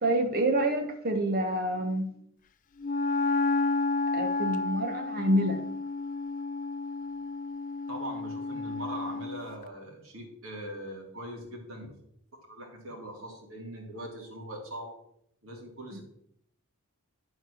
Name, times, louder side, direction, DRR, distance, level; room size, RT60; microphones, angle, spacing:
voice 1, 0.0-2.1 4.1-5.6 15.9-16.0, right 1 dB, 40° right, 5 dB, 1.0 m, -27 dB
Wind instrument woodwind instrument, 2.8-9.5, left 3 dB, 35° left, 0.5 m, -31 dB
voice 2, 7.9-11.9 12.5-15.0 15.4-16.0, right 1 dB, 65° right, 0 dB, 3.2 m, -41 dB
12.0 x 4.8 x 6.3 m, 0.73 s
head